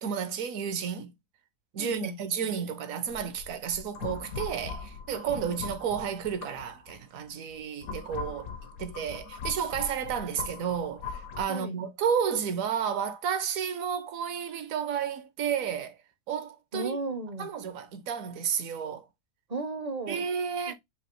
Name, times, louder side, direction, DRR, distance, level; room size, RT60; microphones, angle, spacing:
voice 1, 0.0-1.1 1.7-8.5 8.8-16.0 16.3-17.0 17.4-19.1 20.1-20.7, right 7 dB, 65° right, 1.1 m, -32 dB
voice 2, 1.8-2.2 11.5-11.7 16.7-17.5 19.5-20.2 20.7-20.8, right 3 dB, 40° right, 0.6 m, -35 dB
sound 1, 3.1-7.0 7.5-11.4, left 5 dB, 70° left, 1.2 m, -40 dB
5.2 x 2.7 x 3.0 m
omnidirectional pair, 1.6 m